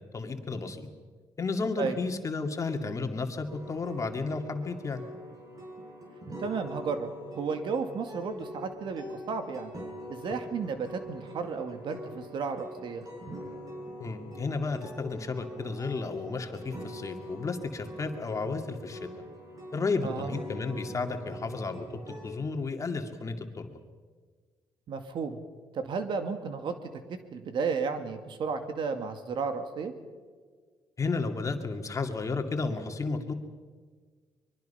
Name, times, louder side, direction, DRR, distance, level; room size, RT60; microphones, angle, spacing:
voice 1, 0.1-0.9 1.4-5.0 10.3-10.4 14.0-19.1 19.7-23.8 31.0-33.3, left 4 dB, 40° left, 5 dB, 2.3 m, -33 dB
sound 1, 3.5-22.3, equal, 45° right, 6.8 m, -44 dB
voice 2, 6.4-7.1 7.4-9.7 10.1-13.0 20.0-20.3 24.9-25.4 25.7-26.8 27.1-29.9, right 5 dB, 65° right, 7 dB, 2.2 m, -33 dB
24.5 x 22.5 x 5.7 m, 1.5 s
cardioid pair, 75°, 9 cm